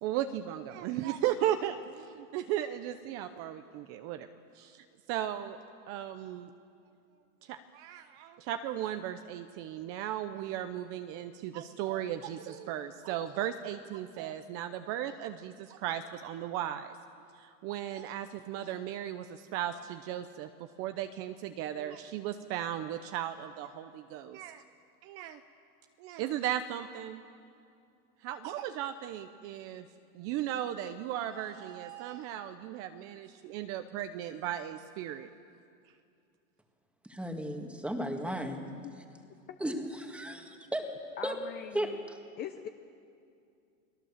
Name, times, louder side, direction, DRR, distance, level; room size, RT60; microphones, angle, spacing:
voice 1, 0.0-4.3 4.5-5.6 5.9-6.5 7.4-17.0 17.3-20.5 20.8-24.6 25.0-25.4 26.0-27.2 28.2-29.9 30.1-35.3, right 11 dB, 30° right, 9 dB, 0.8 m, -36 dB
voice 2, 37.0-38.6 39.6-40.4 40.7-40.8 41.2-41.3 41.7-42.2, right 1 dB, 5° right, 3 dB, 1.8 m, -34 dB
voice 3, 41.2-42.0 42.4-42.7, left 9 dB, 25° left, 7 dB, 0.7 m, -41 dB
30.0 x 19.0 x 7.4 m, 2.4 s
supercardioid pair, 155°, 43 cm